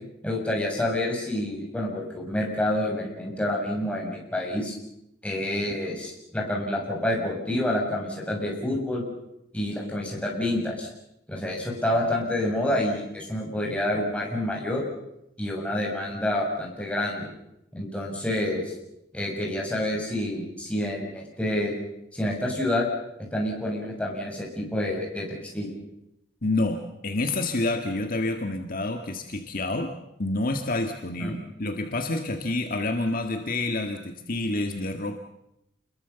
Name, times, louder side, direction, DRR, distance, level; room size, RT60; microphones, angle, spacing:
voice 1, 0.2-4.8 5.2-9.0 9.5-10.9 11.3-14.8 15.4-17.3 17.7-18.7 19.1-21.7 22.1-22.9 23.3-25.7 31.2-31.4, left 1 dB, 5° left, -2 dB, 6.8 m, -28 dB
voice 2, 26.4-29.9 30.2-35.2, left 2 dB, 45° left, 5 dB, 1.8 m, -28 dB
28.0 x 22.0 x 7.0 m, 0.84 s
head